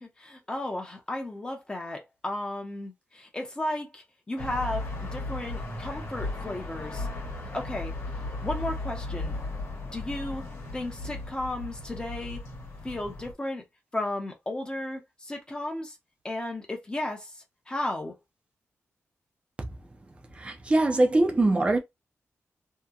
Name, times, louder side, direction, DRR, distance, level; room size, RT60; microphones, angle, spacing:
voice 1, 0.0-7.1 7.5-7.9 8.4-9.4 9.9-10.5 10.7-12.4 12.8-13.6 13.9-16.0 16.2-18.2, left 1 dB, 20° left, 0.7 m, -34 dB
sound 1, 4.4-13.3, left 2 dB, 60° left, 1.1 m, -36 dB
voice 2, 20.4-21.8, right 2 dB, 20° right, 0.5 m, -22 dB
2.8 x 2.1 x 2.3 m
wide cardioid pair, 155°, 5 cm